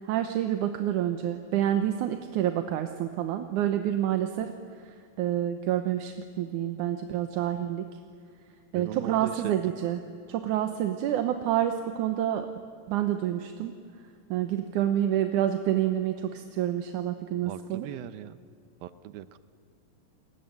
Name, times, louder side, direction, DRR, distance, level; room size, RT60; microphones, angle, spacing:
voice 1, 0.1-4.5 5.2-7.9 8.7-10.0 10.3-12.5 12.9-13.7 14.3-17.9, right 11 dB, 70° right, 7 dB, 2.3 m, -28 dB
voice 2, 8.8-9.7 17.5-18.4 18.8-19.4, right 12 dB, 85° right, 14 dB, 2.7 m, -39 dB
29.0 x 20.5 x 9.4 m, 2.3 s
omnidirectional pair, 4.1 m